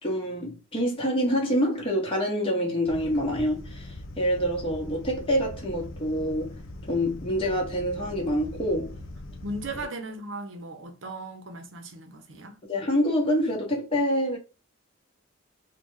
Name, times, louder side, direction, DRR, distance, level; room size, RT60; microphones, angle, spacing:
voice 1, 0.0-6.6 6.9-9.0 12.7-14.4, equal, 30° left, 1.3 m, -26 dB
sound 1, 2.9-9.9, left 1 dB, 85° left, 0.6 m, -41 dB
voice 2, 9.4-12.6, right 2 dB, 80° right, 0.8 m, -37 dB
3.6 x 2.4 x 3.1 m
head